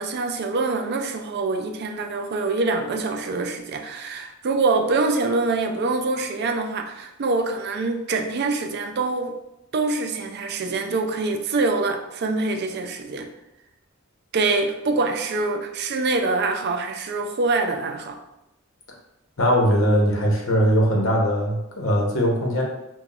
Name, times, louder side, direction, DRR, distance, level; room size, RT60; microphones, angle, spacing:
voice 1, 0.0-9.3 9.7-13.3 14.3-18.2, right 3 dB, 55° right, 5 dB, 0.4 m, -25 dB
voice 2, 19.4-22.6, equal, 90° left, -1 dB, 0.9 m, -20 dB
5.7 x 2.2 x 2.4 m, 0.89 s
head